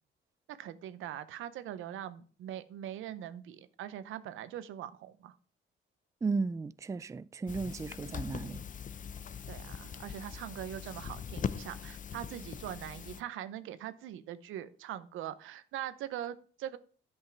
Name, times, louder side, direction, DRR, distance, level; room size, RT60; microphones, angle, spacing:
voice 1, 0.5-5.3 9.5-16.8, right 11 dB, 85° right, 0.9 m, -42 dB
voice 2, 6.2-8.6, right 4 dB, 15° right, 0.3 m, -35 dB
sound 1, 7.5-13.2, left 7 dB, 40° left, 0.6 m, -41 dB
10.0 x 5.5 x 5.9 m
cardioid pair, 90°, 20 cm